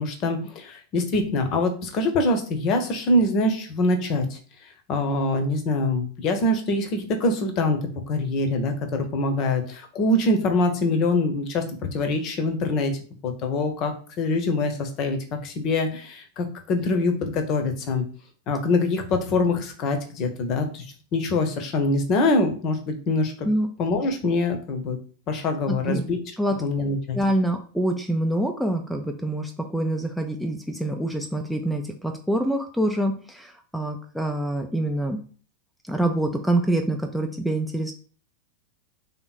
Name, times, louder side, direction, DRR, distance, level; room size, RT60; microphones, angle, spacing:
voice 1, 0.0-4.4 4.9-7.8 8.1-11.6 11.9-12.9 13.2-15.2 15.4-18.0 18.5-20.8 21.1-23.5 23.8-25.0 25.3-26.2 26.6-27.2, left 2 dB, 40° left, 6 dB, 0.8 m, -24 dB
voice 2, 25.7-26.0 26.4-26.6 27.1-35.2 35.8-37.9, right 1 dB, ahead, 4 dB, 0.5 m, -26 dB
3.4 x 3.0 x 4.1 m, 0.41 s
figure-of-eight pair, 90°, 0 cm